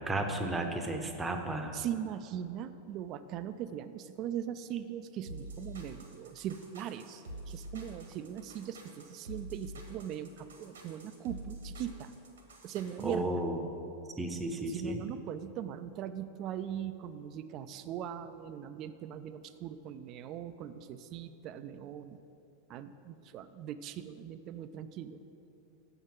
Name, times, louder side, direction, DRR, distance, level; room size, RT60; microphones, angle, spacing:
voice 1, 0.0-1.8 13.0-13.6 14.2-15.0, right 1 dB, 10° right, 5 dB, 0.7 m, -33 dB
voice 2, 1.7-12.1 12.6-13.3 14.7-22.2 22.7-25.2, right 10 dB, 35° right, 12 dB, 0.4 m, -40 dB
sound 1, 5.3-13.2, right 1 dB, 70° right, 1.1 m, -47 dB
7.1 x 5.8 x 6.1 m, 2.8 s
figure-of-eight pair, 90°, 0 cm